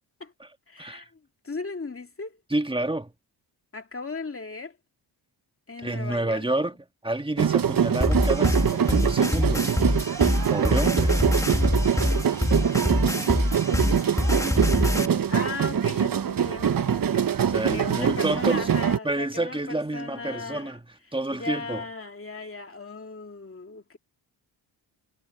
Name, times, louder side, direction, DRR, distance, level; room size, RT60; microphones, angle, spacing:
voice 1, 0.7-1.2 1.4-2.4 3.7-4.8 5.7-6.4 14.7-17.3 17.7-20.8 21.3-24.0, left 4 dB, 30° left, 2.3 m, -37 dB
voice 2, 2.5-3.1 5.8-6.7 7.0-9.7 10.5-11.2 17.4-18.7 19.0-20.8 21.1-21.8, right 2 dB, 10° right, 1.7 m, -29 dB
sound 1, 7.4-19.0, right 8 dB, 45° right, 1.0 m, -24 dB
sound 2, 8.0-15.1, left 1 dB, 5° left, 2.0 m, -24 dB
cardioid pair, 80°, 46 cm